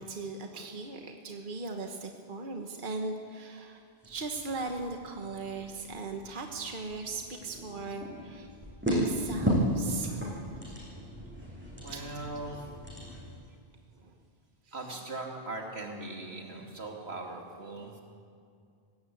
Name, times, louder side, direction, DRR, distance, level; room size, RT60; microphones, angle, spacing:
voice 1, 0.0-8.5 8.8-10.3 11.9-12.1 14.0-14.1 14.7-14.9, right 3 dB, 55° right, 4 dB, 1.4 m, -38 dB
sound 1, 4.0-13.3, equal, 10° right, 7.5 m, -35 dB
voice 2, 11.7-12.7 14.7-18.0, right 2 dB, 85° right, 1 dB, 3.0 m, -40 dB
19.5 x 16.0 x 8.7 m, 2.4 s
omnidirectional pair, 1.0 m